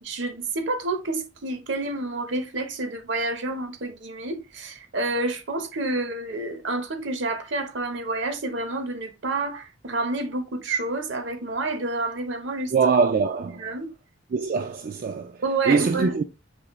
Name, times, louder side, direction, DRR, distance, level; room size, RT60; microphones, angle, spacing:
voice 1, 0.0-12.7 13.4-13.9 15.4-16.1, right 2 dB, 70° right, 0.8 m, -29 dB
voice 2, 12.7-13.7 14.3-15.4 15.7-16.2, right 5 dB, 45° right, 0.3 m, -23 dB
4.9 x 3.2 x 3.0 m
head